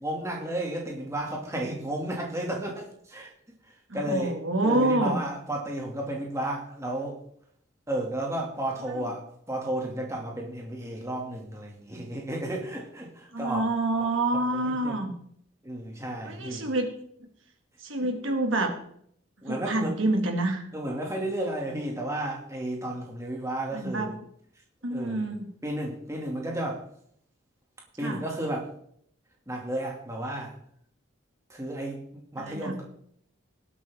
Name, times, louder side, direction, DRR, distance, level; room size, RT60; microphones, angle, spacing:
voice 1, 0.0-3.3 3.9-4.4 4.6-7.2 7.9-13.6 14.5-15.0 15.6-16.6 18.0-18.1 19.4-19.9 20.7-24.1 24.9-25.3 25.6-26.8 28.0-28.7 29.5-30.5 31.5-32.0 32.3-32.8, right 1 dB, 15° right, -1 dB, 2.6 m, -33 dB
voice 2, 3.9-5.2 8.9-9.1 13.3-15.1 16.2-16.9 17.2-17.3 17.8-18.8 19.5-20.7 23.7-24.1 24.8-25.5 28.0-28.2 32.4-32.8, right 2 dB, 80° right, 4 dB, 2.4 m, -27 dB
18.5 x 8.3 x 3.7 m, 0.67 s
head